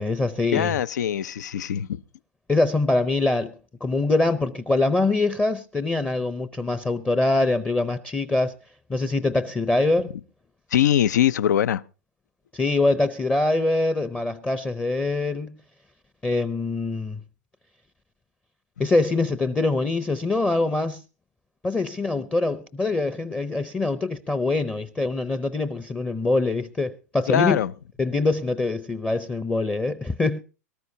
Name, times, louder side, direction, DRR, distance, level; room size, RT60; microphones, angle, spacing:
voice 1, 0.0-0.7 2.5-3.5 3.8-8.5 8.9-10.1 12.5-15.6 16.2-17.2 18.8-21.0 21.6-27.6 28.0-30.4, left 2 dB, 10° left, 0.6 m, -24 dB
voice 2, 0.5-2.0 10.7-11.8 27.3-27.7, left 10 dB, 80° left, 0.6 m, -22 dB
23.0 x 13.0 x 2.7 m
hypercardioid pair, 130°, 9 cm